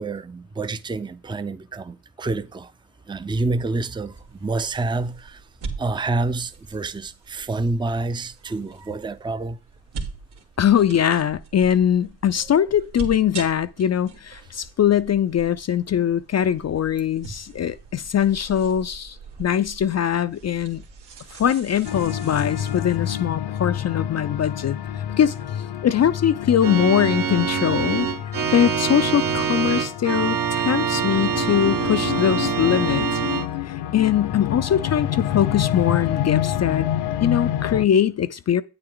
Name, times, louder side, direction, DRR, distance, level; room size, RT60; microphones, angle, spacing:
voice 1, 0.0-2.7 3.1-5.4 5.8-9.6, right 3 dB, 10° right, 0.6 m, -28 dB
sound 1, 4.1-23.0, right 4 dB, 75° right, 2.1 m, -41 dB
voice 2, 10.6-20.8 21.3-25.3 25.8-28.1 28.5-33.2 33.7-36.9 37.2-38.6, left 9 dB, 40° left, 0.5 m, -22 dB
sound 2, 21.8-37.9, left 11 dB, 65° left, 0.8 m, -28 dB
Organ, 26.6-33.5, right 7 dB, 50° right, 1.2 m, -25 dB
8.9 x 7.8 x 3.8 m
supercardioid pair, 55°, 42 cm